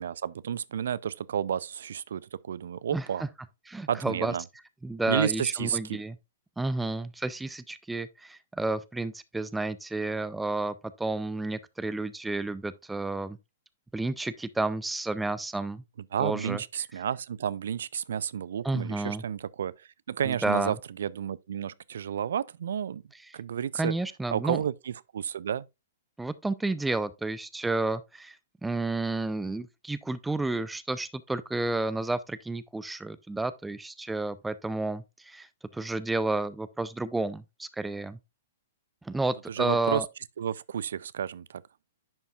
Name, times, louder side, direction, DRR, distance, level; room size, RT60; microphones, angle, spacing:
voice 1, 0.0-3.2 3.9-4.4 5.1-6.0 16.1-23.0 23.3-23.9 24.3-25.7 39.2-40.0 40.4-41.6, right 8 dB, 60° right, 0.4 m, -31 dB
voice 2, 3.7-4.3 4.8-6.1 6.6-13.4 13.9-15.8 16.2-16.6 18.6-19.2 20.2-20.7 23.8-24.6 26.2-28.4 28.6-35.5 35.7-38.2 39.0-40.1, right 2 dB, 5° right, 0.4 m, -31 dB
10.5 x 5.4 x 2.4 m
figure-of-eight pair, 110°, 0 cm